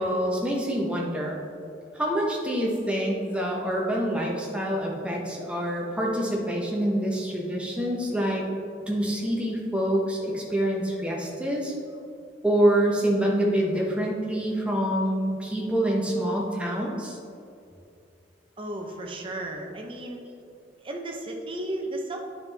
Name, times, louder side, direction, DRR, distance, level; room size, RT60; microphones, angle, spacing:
voice 1, 0.0-1.4 1.9-8.4 8.9-11.7 12.4-17.2, right 1 dB, 5° right, -2 dB, 1.1 m, -26 dB
voice 2, 18.6-20.2 20.8-22.2, right 1 dB, 30° right, 1 dB, 0.9 m, -34 dB
10.0 x 5.5 x 3.5 m, 2.5 s
head